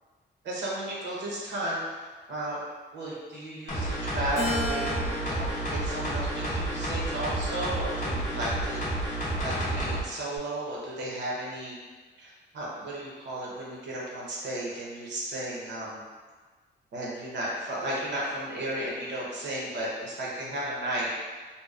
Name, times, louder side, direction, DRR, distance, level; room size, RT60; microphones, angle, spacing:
voice 1, 0.4-1.8 2.3-2.6 2.9-8.8 9.4-11.7 12.2-16.0 16.9-21.1, right 1 dB, 70° right, -5 dB, 0.7 m, -34 dB
sound 1, 3.7-10.0 10.4-10.5, right 1 dB, 40° left, 0.5 m, -30 dB
Keyboard (musical), 4.4-6.8 7.4-8.7, left 1 dB, 90° left, 0.6 m, -36 dB
2.7 x 2.0 x 2.3 m, 1.4 s
wide cardioid pair, 170°, 19 cm